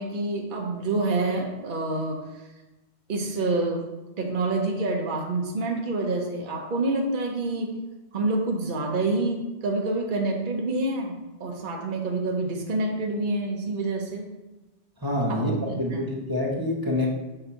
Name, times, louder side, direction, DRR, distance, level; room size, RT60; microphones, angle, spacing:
voice 1, 0.0-2.2 3.1-3.8 4.2-7.7 8.1-11.1 11.4-14.3 15.3-16.0, right 2 dB, 50° right, 1 dB, 1.0 m, -27 dB
voice 2, 15.0-17.1, left 1 dB, 20° right, -2 dB, 1.0 m, -26 dB
7.0 x 2.8 x 5.5 m, 1.1 s
omnidirectional pair, 1.2 m